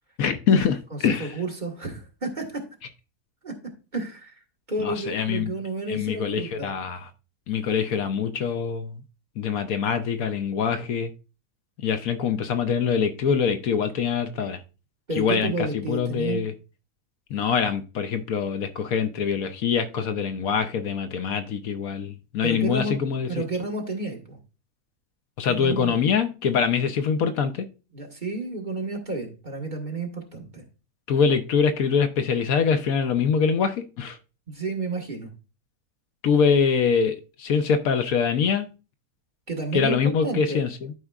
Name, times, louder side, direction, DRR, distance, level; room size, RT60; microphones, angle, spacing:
voice 1, 0.2-1.3 4.8-5.5 5.9-7.1 7.5-9.0 9.4-11.1 11.8-14.6 15.2-16.5 17.3-23.3 25.4-27.7 31.1-34.2 36.2-38.7 39.7-40.9, left 6 dB, 70° left, 8 dB, 1.1 m, -24 dB
voice 2, 0.9-2.6 3.4-3.5 3.9-4.3 4.7-6.7 15.1-16.4 22.4-23.0 23.3-24.4 25.5-26.0 27.9-30.6 34.5-35.3 39.5-40.0 40.2-40.7, right 2 dB, 30° right, 0 dB, 1.8 m, -31 dB
12.5 x 5.0 x 2.4 m, 0.31 s
omnidirectional pair, 1.6 m